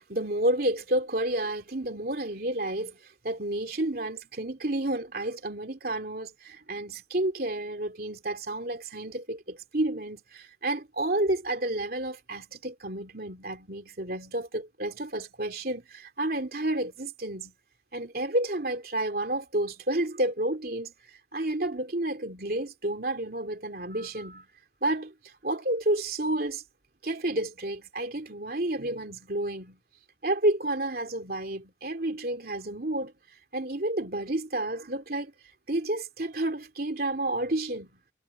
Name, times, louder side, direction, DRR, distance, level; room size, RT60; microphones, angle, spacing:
voice 1, 0.0-17.5 17.9-20.9 21.3-24.5 24.8-25.1 25.4-26.6 27.0-29.8 30.2-33.1 33.5-35.3 35.7-37.9, right 1 dB, 55° right, 3.0 m, -30 dB
head